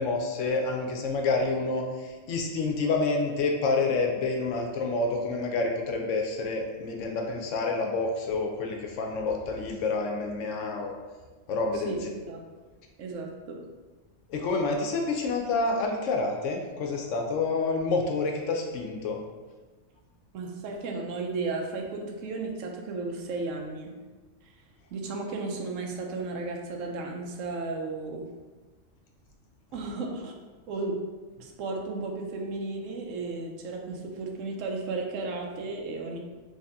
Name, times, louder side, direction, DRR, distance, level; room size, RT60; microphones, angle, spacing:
voice 1, 0.0-10.9 11.5-11.9 14.3-19.2, left 3 dB, 75° left, 2 dB, 0.9 m, -28 dB
voice 2, 13.0-13.6 20.3-23.9 24.4-24.5 24.9-28.3 29.7-30.3 30.7-31.0 31.4-36.2, right 3 dB, 85° right, 2 dB, 1.0 m, -34 dB
3.2 x 2.8 x 3.4 m, 1.3 s
omnidirectional pair, 1.3 m